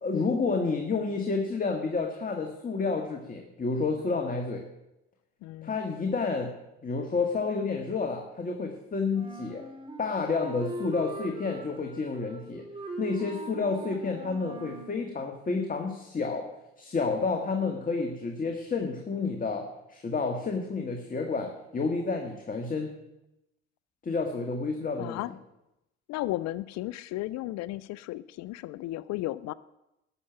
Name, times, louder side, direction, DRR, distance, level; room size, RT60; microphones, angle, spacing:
voice 1, 0.0-4.6 5.6-6.5 6.8-9.6 10.0-12.6 13.0-16.5 16.8-19.6 19.9-22.9 24.0-25.2, left 4 dB, 25° left, 3 dB, 1.8 m, -30 dB
voice 2, 5.4-5.8 25.0-25.3 26.1-29.5, left 16 dB, 55° left, 18 dB, 0.5 m, -34 dB
Wind instrument woodwind instrument, 9.1-15.0, right 3 dB, 15° right, 2.3 m, -41 dB
12.5 x 6.7 x 8.8 m, 0.91 s
hypercardioid pair, 75°, 31 cm